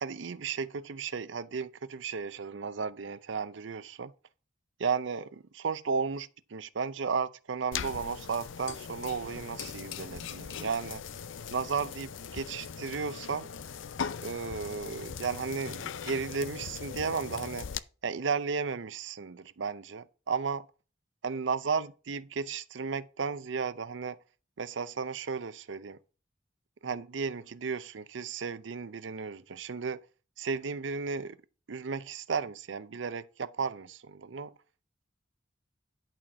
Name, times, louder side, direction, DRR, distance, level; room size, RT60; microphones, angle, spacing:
voice 1, 0.0-4.1 4.8-11.0 11.5-13.5 14.2-17.7 18.0-20.7 21.2-24.2 24.6-26.0 26.8-30.0 30.4-31.4 31.7-34.5, right 5 dB, 75° right, 0.6 m, -34 dB
sound 1, 7.7-17.8, left 7 dB, 85° left, 0.5 m, -40 dB
11.0 x 4.3 x 6.1 m
head